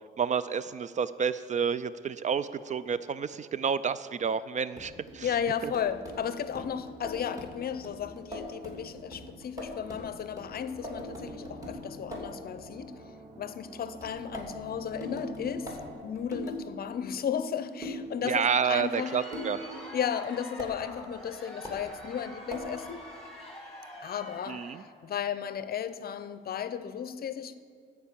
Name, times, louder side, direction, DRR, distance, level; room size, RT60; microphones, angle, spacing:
voice 1, 0.2-5.3 18.2-19.6 24.5-24.8, right 6 dB, 40° right, 16 dB, 0.4 m, -29 dB
sound 1, 4.8-12.4 14.0-16.6 17.8-18.1 19.3-19.6 20.6-20.7 21.6-21.8 22.5-22.8, equal, 15° right, 2.6 m, -41 dB
voice 2, 5.2-13.0 13.4-15.8 16.0-19.2 19.9-23.1 24.0-27.5, left 8 dB, 50° left, 13 dB, 0.6 m, -34 dB
sound 2, 10.5-15.9, right 1 dB, 90° right, 3.2 m, -46 dB
Crowd, 18.5-24.9, equal, ahead, 2.4 m, -46 dB
13.5 x 4.7 x 7.3 m, 2.1 s
cardioid pair, 90°, 20 cm